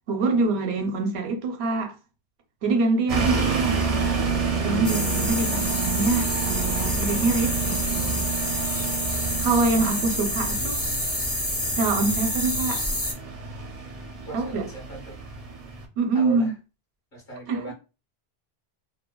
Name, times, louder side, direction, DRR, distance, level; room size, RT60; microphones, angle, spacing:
voice 1, 0.1-1.9 2.6-3.8 4.6-8.2 9.4-10.9 11.8-12.8 14.3-14.7 16.0-16.5 17.5-17.6, right 3 dB, 90° right, 0.9 m, -25 dB
sound 1, 3.1-15.8, right 5 dB, 50° right, 0.5 m, -29 dB
sound 2, 4.8-13.1, left 1 dB, 20° left, 0.4 m, -28 dB
voice 2, 10.3-11.1 14.3-15.2 16.1-16.5 17.1-17.7, right 3 dB, 55° left, 1.4 m, -39 dB
3.1 x 2.2 x 2.2 m
omnidirectional pair, 1.1 m